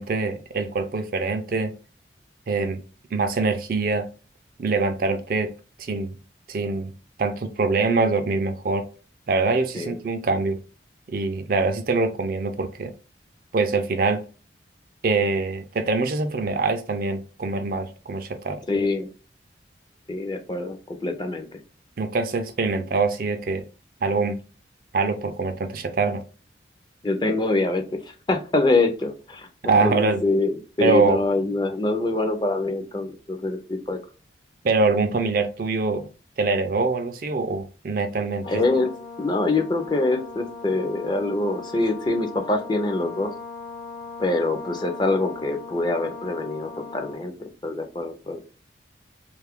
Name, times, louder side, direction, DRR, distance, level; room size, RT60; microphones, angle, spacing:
voice 1, 0.0-1.7 2.5-2.8 3.1-4.1 4.6-5.5 5.8-6.1 6.5-6.9 7.2-8.9 9.3-10.6 11.1-12.9 13.5-14.2 15.0-18.6 22.0-23.6 24.0-24.4 24.9-26.2 29.7-30.2 30.8-31.2 34.6-36.1 36.4-38.5, right 3 dB, 50° right, 0.4 m, -24 dB
voice 2, 18.7-19.1 20.1-21.6 27.0-34.0 38.5-38.9 39.2-43.3 44.2-48.6, left 2 dB, 25° left, 0.4 m, -25 dB
Brass instrument, 38.4-47.3, left 4 dB, 90° left, 0.8 m, -39 dB
3.1 x 2.3 x 3.5 m
head